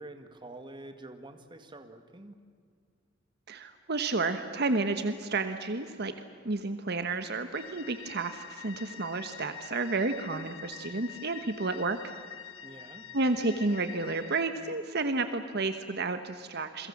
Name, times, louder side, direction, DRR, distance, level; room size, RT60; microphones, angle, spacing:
voice 1, 0.0-2.3 12.6-13.1, right 2 dB, 25° right, 7 dB, 1.9 m, -47 dB
voice 2, 3.5-6.1 6.4-12.0 13.1-16.9, right 3 dB, 55° right, 9 dB, 1.3 m, -31 dB
sound 1, 7.5-14.4, left 8 dB, 65° left, 1.7 m, -46 dB
29.5 x 23.0 x 7.3 m, 2.1 s
head